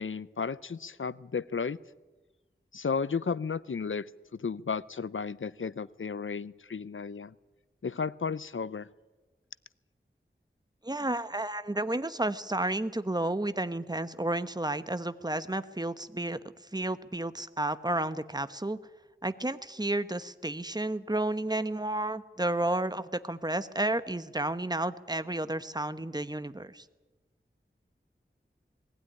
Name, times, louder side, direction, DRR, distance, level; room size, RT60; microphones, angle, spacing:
voice 1, 0.0-1.8 2.7-7.3 7.8-8.9, left 5 dB, 75° left, 18 dB, 0.6 m, -34 dB
voice 2, 10.8-16.4 16.7-18.8 19.2-26.8, right 1 dB, 20° right, 12 dB, 1.1 m, -31 dB
20.5 x 16.0 x 9.8 m, 1.2 s
wide cardioid pair, 40°, 21 cm